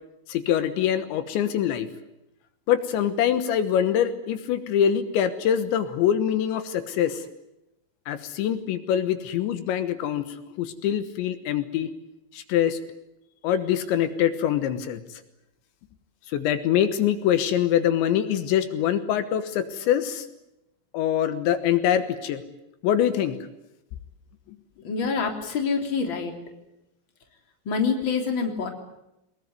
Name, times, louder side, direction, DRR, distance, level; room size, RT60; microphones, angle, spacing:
voice 1, 0.3-1.9 2.7-7.2 8.1-10.3 10.6-11.9 12.3-12.8 13.4-15.0 16.3-20.3 20.9-22.4 22.8-23.4, left 10 dB, 80° left, 10 dB, 3.5 m, -24 dB
voice 2, 24.8-26.3 27.6-28.7, left 5 dB, 30° left, 4 dB, 3.4 m, -26 dB
23.5 x 21.0 x 9.5 m, 0.90 s
omnidirectional pair, 5.3 m